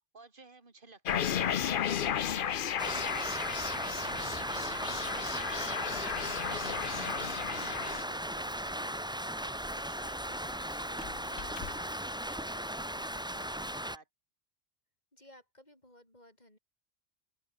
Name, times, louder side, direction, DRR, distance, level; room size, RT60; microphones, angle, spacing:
voice 1, 0.1-6.5 6.8-9.0 9.4-10.2 10.4-14.1, right 3 dB, 45° right, 2.8 m, -56 dB
sound 1, 1.0-8.0, left 9 dB, 55° left, 0.8 m, -34 dB
Rain, 2.8-14.0, right 1 dB, 5° right, 0.9 m, -37 dB
Squeak, 5.7-12.1, left 7 dB, 70° left, 1.4 m, -51 dB
voice 2, 15.1-16.6, left 1 dB, 35° left, 7.3 m, -58 dB
open air
omnidirectional pair, 1.2 m